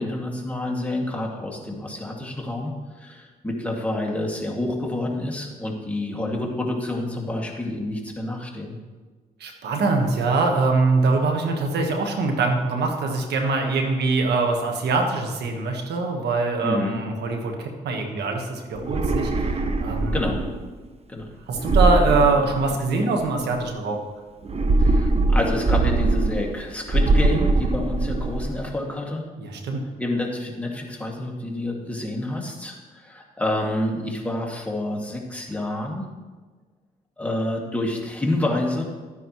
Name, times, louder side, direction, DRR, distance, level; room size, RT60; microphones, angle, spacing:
voice 1, 0.0-2.7 3.0-8.8 16.6-17.0 20.1-20.4 21.1-21.3 24.8-29.2 30.0-36.0 37.2-38.8, left 1 dB, 10° left, -1 dB, 2.4 m, -28 dB
voice 2, 9.4-20.2 21.5-24.0 29.4-29.8, right 3 dB, 80° right, 3 dB, 1.5 m, -23 dB
sound 1, 18.8-20.7 21.6-23.0 24.4-26.6 26.9-28.6, right 2 dB, 35° right, 1.0 m, -21 dB
12.0 x 9.8 x 3.2 m, 1.4 s
cardioid pair, 65°, 17 cm